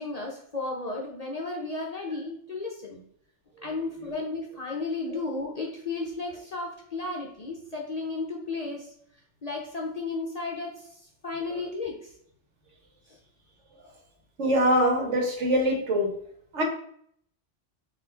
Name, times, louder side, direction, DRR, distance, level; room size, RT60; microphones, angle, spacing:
voice 1, 0.0-3.1 3.6-8.9 9.4-12.1 13.1-13.2, left 3 dB, 45° left, -2 dB, 0.6 m, -34 dB
voice 2, 14.4-16.1 16.5-16.6, equal, 75° right, 1 dB, 1.4 m, -23 dB
4.1 x 2.5 x 4.3 m, 0.66 s
omnidirectional pair, 1.2 m